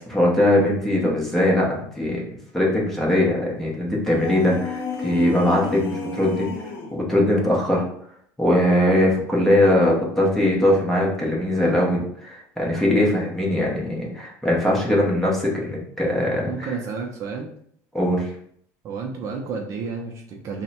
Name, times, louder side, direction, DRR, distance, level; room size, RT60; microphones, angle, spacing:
voice 1, 0.1-2.2 2.5-6.5 6.9-7.8 8.4-16.8 17.9-18.3, left 1 dB, 5° left, -3 dB, 0.8 m, -21 dB
sound 1, 4.0-7.0, left 5 dB, 75° left, 0.7 m, -31 dB
voice 2, 16.5-17.5 18.8-20.6, right 5 dB, 40° right, 1 dB, 0.5 m, -31 dB
3.4 x 2.1 x 4.1 m, 0.65 s
cardioid pair, 160°, 8 cm